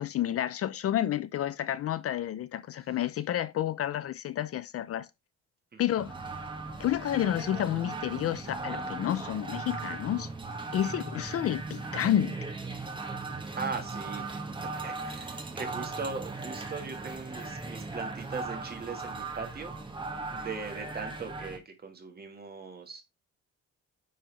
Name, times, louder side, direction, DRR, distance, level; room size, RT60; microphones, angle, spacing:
voice 1, 0.0-5.1 5.8-6.1 6.8-10.3 10.7-12.4, left 11 dB, 50° left, 0.5 m, -30 dB
sound 1, 6.0-21.6, right 3 dB, 15° right, 1.1 m, -38 dB
voice 2, 13.5-14.3 14.8-19.7 20.3-23.0, right 4 dB, 30° right, 1.6 m, -39 dB
9.3 x 3.9 x 3.3 m
cardioid pair, 155°, 30 cm